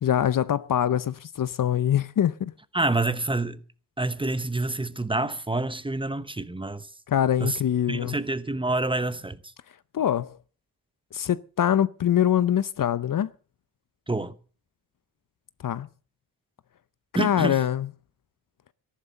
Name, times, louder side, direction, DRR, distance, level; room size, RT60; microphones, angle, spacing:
voice 1, 0.0-2.5 7.1-8.2 9.9-10.4 11.1-13.3 15.6-15.9 17.2-17.9, left 10 dB, 55° left, 0.6 m, -24 dB
voice 2, 2.7-3.6 4.0-6.9 7.4-7.6 7.9-9.4 14.1-14.3 17.1-17.6, right 2 dB, 15° right, 0.9 m, -27 dB
13.5 x 11.5 x 6.6 m
wide cardioid pair, 110°, 39 cm